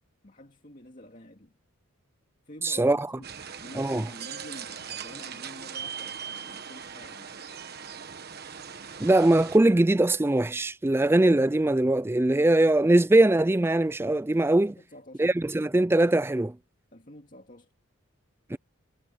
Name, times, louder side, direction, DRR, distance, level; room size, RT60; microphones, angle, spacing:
voice 1, 0.2-1.6 2.5-3.3 3.6-7.3 14.7-15.2 16.9-17.7, left 1 dB, 40° left, 2.3 m, -48 dB
voice 2, 2.6-3.1 3.7-4.1 9.0-14.8 15.2-16.6 18.5-18.6, right 1 dB, 10° right, 0.3 m, -21 dB
sound 1, 3.2-9.6, right 7 dB, 45° right, 1.4 m, -40 dB
head